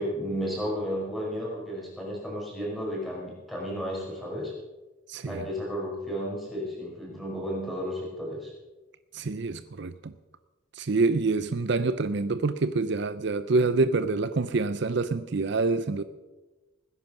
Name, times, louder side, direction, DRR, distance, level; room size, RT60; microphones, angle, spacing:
voice 1, 0.0-4.5 5.2-8.5, equal, ahead, -4 dB, 5.4 m, -33 dB
voice 2, 5.1-5.4 9.1-10.1 10.7-16.0, right 3 dB, 55° right, 13 dB, 0.5 m, -26 dB
18.5 x 10.5 x 6.1 m, 1.1 s
head